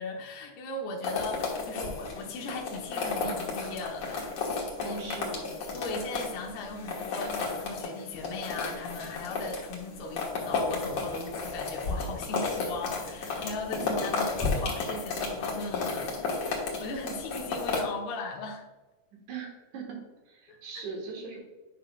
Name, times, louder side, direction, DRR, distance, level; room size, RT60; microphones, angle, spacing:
voice 1, 0.0-4.3 4.5-5.2 5.7-18.7 20.5-20.8, left 3 dB, 90° left, 0 dB, 2.9 m, -38 dB
sound 1, 1.0-17.8, left 4 dB, 55° left, 2.2 m, -33 dB
voice 2, 4.8-5.5 13.8-14.0 19.3-20.0 20.3-21.4, right 5 dB, 60° right, 0 dB, 2.5 m, -40 dB
9.9 x 5.9 x 2.3 m, 1.1 s
omnidirectional pair, 4.5 m